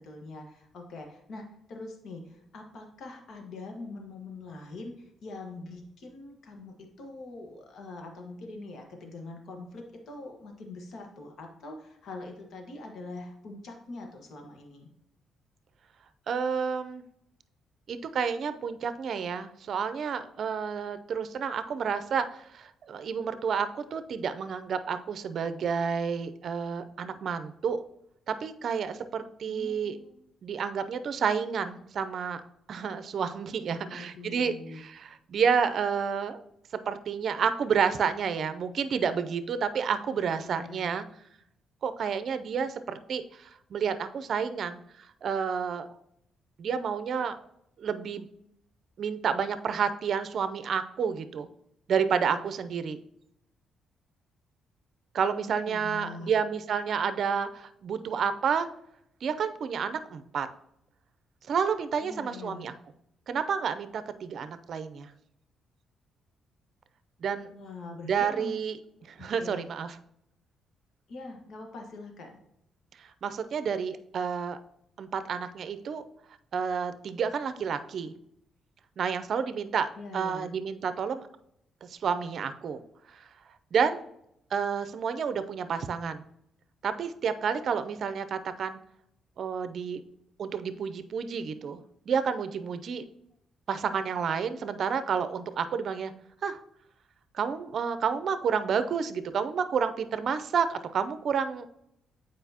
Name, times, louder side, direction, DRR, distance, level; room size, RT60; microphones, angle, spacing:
voice 1, 0.0-14.9 29.4-30.2 33.7-34.8 40.2-40.9 55.3-56.3 62.0-62.7 67.5-68.5 69.2-69.7 71.1-72.4 79.9-80.5, left 3 dB, 65° left, 3 dB, 1.4 m, -43 dB
voice 2, 16.3-17.0 17.9-27.8 28.3-30.0 30.4-32.4 32.7-36.4 36.9-41.0 41.8-44.8 45.2-45.9 46.6-47.4 47.8-48.3 49.0-51.5 51.9-53.0 55.1-58.7 59.2-60.5 61.5-62.7 63.3-65.1 67.2-67.5 68.0-68.8 69.1-70.0 73.0-74.6 75.0-76.0 76.5-78.1 79.0-81.3 81.8-82.8 83.1-83.3 83.7-84.0 84.5-86.2 86.8-88.8 89.4-90.0 90.4-91.8 92.1-93.0 93.7-96.1 96.4-96.6 97.3-101.7, right 6 dB, 60° right, 11 dB, 0.5 m, -30 dB
8.0 x 4.9 x 2.8 m, 0.77 s
cardioid pair, 90°, 0 cm